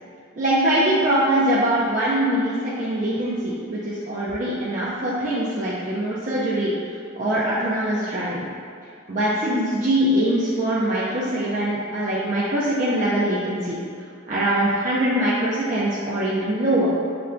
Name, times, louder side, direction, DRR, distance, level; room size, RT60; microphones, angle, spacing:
voice 1, 0.4-6.8 7.1-8.4 9.1-13.8 14.3-16.9, right 1 dB, 35° right, -8 dB, 0.4 m, -22 dB
6.6 x 2.2 x 2.5 m, 2.4 s
head